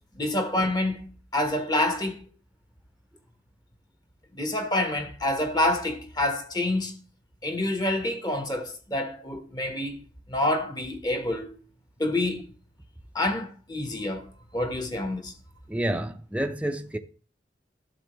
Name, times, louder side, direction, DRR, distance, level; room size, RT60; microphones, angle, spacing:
voice 1, 0.1-2.2 4.3-7.0 7.4-11.5 12.0-12.5 13.1-14.3 14.5-15.3, left 1 dB, 20° left, 1.1 m, -27 dB
voice 2, 15.7-17.0, right 1 dB, 5° right, 0.5 m, -29 dB
12.0 x 7.3 x 3.1 m
head